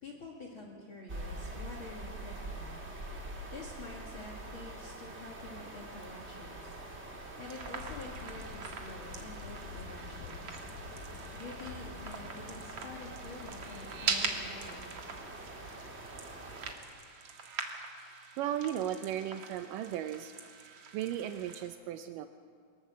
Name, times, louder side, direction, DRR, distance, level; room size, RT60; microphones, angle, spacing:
voice 1, 0.0-2.9 3.5-6.8 7.0-10.6 11.0-14.9, left 2 dB, 45° left, -1 dB, 2.4 m, -48 dB
sound 1, 1.1-16.7, right 1 dB, 25° right, 1.9 m, -45 dB
sound 2, 7.4-21.7, right 5 dB, 50° right, 2.4 m, -42 dB
sound 3, 7.8-14.3, left 7 dB, 80° left, 2.6 m, -49 dB
voice 2, 18.4-20.3 20.9-22.3, right 11 dB, 80° right, 8 dB, 2.3 m, -35 dB
23.0 x 19.5 x 7.4 m, 2.1 s
omnidirectional pair, 3.9 m